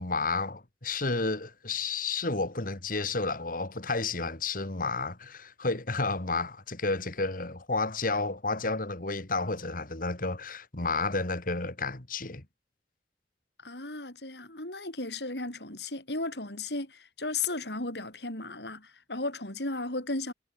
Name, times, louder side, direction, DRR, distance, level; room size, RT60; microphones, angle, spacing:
voice 1, 0.0-12.4, left 3 dB, 50° left, 2.5 m, -31 dB
voice 2, 13.6-20.3, left 3 dB, 70° left, 6.6 m, -35 dB
head